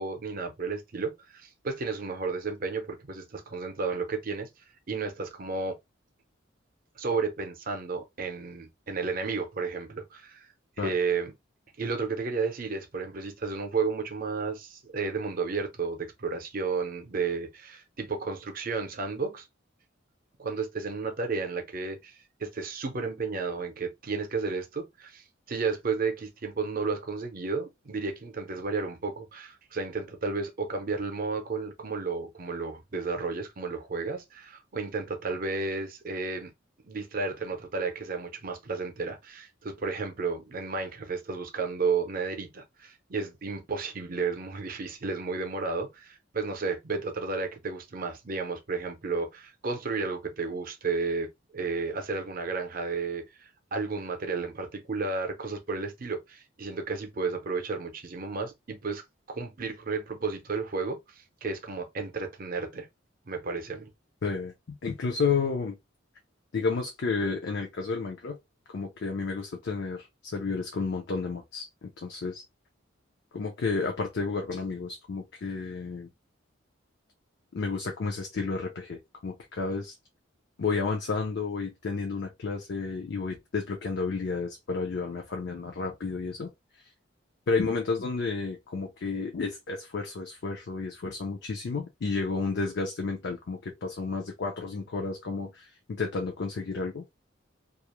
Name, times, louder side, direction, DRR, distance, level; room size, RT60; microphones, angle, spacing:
voice 1, 0.0-4.5 4.9-5.8 7.0-10.5 10.8-11.3 11.8-19.5 20.4-36.5 36.8-62.9 63.3-63.9, right 4 dB, 45° right, 0.6 m, -32 dB
voice 2, 64.2-65.8 66.5-68.4 68.7-72.4 73.3-76.1 77.5-80.0 80.6-86.5 87.5-97.0, left 4 dB, 60° left, 0.5 m, -31 dB
2.4 x 2.0 x 2.9 m
head